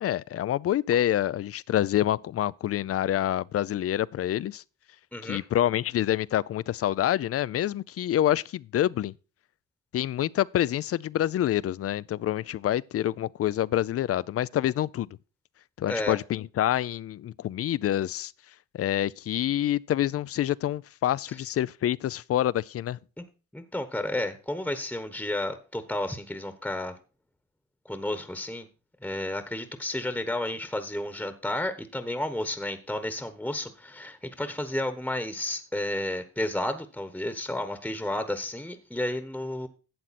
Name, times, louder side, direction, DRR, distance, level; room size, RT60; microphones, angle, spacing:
voice 1, 0.0-4.6 5.2-9.1 9.9-15.1 15.8-18.3 18.7-23.0, left 12 dB, 50° left, 0.4 m, -27 dB
voice 2, 23.5-27.0 27.8-28.7 29.0-39.7, left 1 dB, 5° left, 1.1 m, -32 dB
12.0 x 7.8 x 4.2 m
cardioid pair, 90°, 30 cm